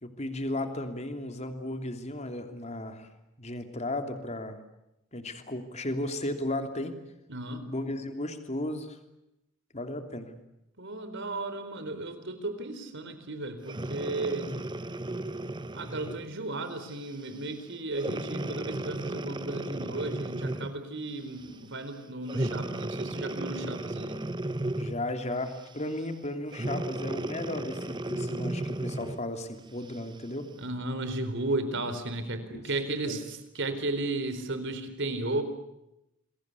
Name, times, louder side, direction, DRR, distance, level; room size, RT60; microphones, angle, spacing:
voice 1, 0.0-3.1 3.4-4.6 5.1-6.9 7.7-9.0 9.7-10.3 24.8-30.5 32.5-32.6 33.0-33.2, left 1 dB, 30° left, 7 dB, 3.1 m, -35 dB
voice 2, 7.3-7.7 10.8-14.6 15.7-24.2 30.6-35.4, right 2 dB, 55° right, 10 dB, 4.3 m, -34 dB
Breathing, 13.6-16.3 16.9-17.1 18.0-20.8 22.3-25.1 26.5-29.3 29.9-30.0, right 1 dB, 20° right, 1.0 m, -34 dB
28.5 x 22.5 x 8.4 m, 0.87 s
head